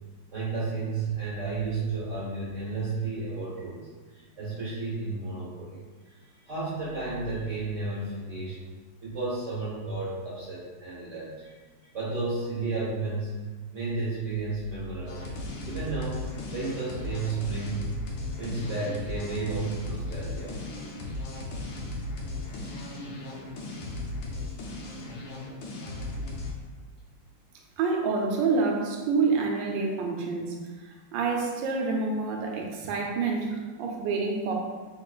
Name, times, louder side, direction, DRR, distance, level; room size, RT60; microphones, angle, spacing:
voice 1, 0.3-5.8 6.1-6.2 6.4-8.5 9.0-11.5 11.8-13.4 13.7-15.3 15.6-17.9 18.4-20.6, right 3 dB, 45° right, -9 dB, 1.5 m, -32 dB
sound 1, 15.1-26.5, left 2 dB, 90° left, 1.4 m, -36 dB
voice 2, 27.8-30.6 30.8-34.5, right 4 dB, 80° right, 1 dB, 1.3 m, -27 dB
3.7 x 3.7 x 2.4 m, 1.4 s
omnidirectional pair, 2.1 m